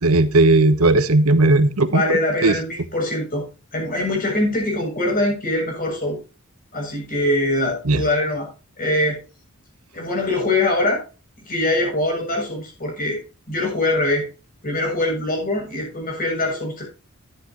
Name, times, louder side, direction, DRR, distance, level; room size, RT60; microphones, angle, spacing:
voice 1, 0.0-2.6 7.8-8.0, right 2 dB, 90° right, 11 dB, 1.2 m, -16 dB
voice 2, 1.9-3.4 3.7-6.2 6.7-8.5 8.8-9.2 9.9-11.0 11.5-13.2 13.5-14.2 14.6-16.8, left 1 dB, 40° left, 0 dB, 7.3 m, -23 dB
12.5 x 10.5 x 3.0 m, 0.32 s
head